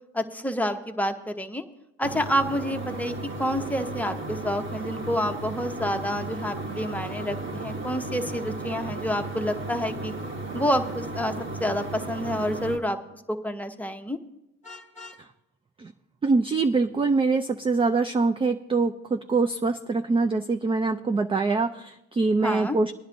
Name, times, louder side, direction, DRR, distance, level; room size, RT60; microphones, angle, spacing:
voice 1, 0.1-1.7 2.0-10.1 10.5-11.3 11.6-14.2 22.4-22.8, equal, 5° left, 5 dB, 0.8 m, -28 dB
sound 1, 2.0-12.8, right 2 dB, 40° right, 1.4 m, -34 dB
Vehicle horn car horn honking, 14.6-15.3, left 3 dB, 25° left, 1.1 m, -44 dB
voice 2, 16.2-22.9, right 3 dB, 20° right, 6 dB, 0.3 m, -24 dB
19.0 x 10.0 x 2.5 m, 0.87 s
cardioid pair, 90°, 30 cm